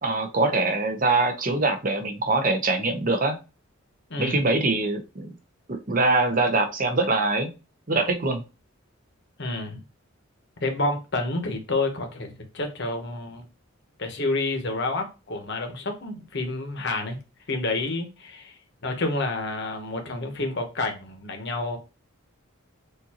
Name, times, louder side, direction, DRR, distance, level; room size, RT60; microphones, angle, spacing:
voice 1, 0.0-3.4 4.2-5.3 5.9-7.5 7.9-8.4, right 2 dB, 40° right, 0.9 m, -23 dB
voice 2, 4.1-4.5 9.4-9.8 10.6-13.4 14.0-17.2 17.5-18.5 18.8-21.8, left 2 dB, 55° left, 1.0 m, -29 dB
6.6 x 2.7 x 2.9 m
head